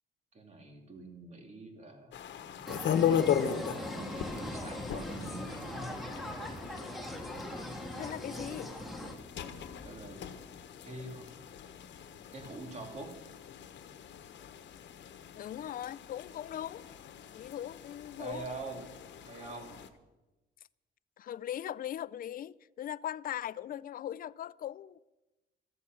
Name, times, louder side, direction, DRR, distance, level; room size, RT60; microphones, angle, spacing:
voice 1, 0.3-3.0 4.0-6.2 9.0-9.1 9.4-10.2 10.8-11.3 12.3-13.1 18.2-18.9 19.2-19.8, right 2 dB, 35° right, 2.9 m, -45 dB
sound 1, 2.1-19.9, left 8 dB, 70° left, 1.2 m, -38 dB
sound 2, 2.7-9.2, left 1 dB, ahead, 1.9 m, -41 dB
sound 3, 4.2-10.3, left 3 dB, 25° left, 1.1 m, -54 dB
voice 2, 8.0-8.7 15.4-16.9 17.3-18.5 21.2-25.0, left 11 dB, 50° left, 0.4 m, -39 dB
14.0 x 14.0 x 6.3 m
cardioid pair, 140°, 19 cm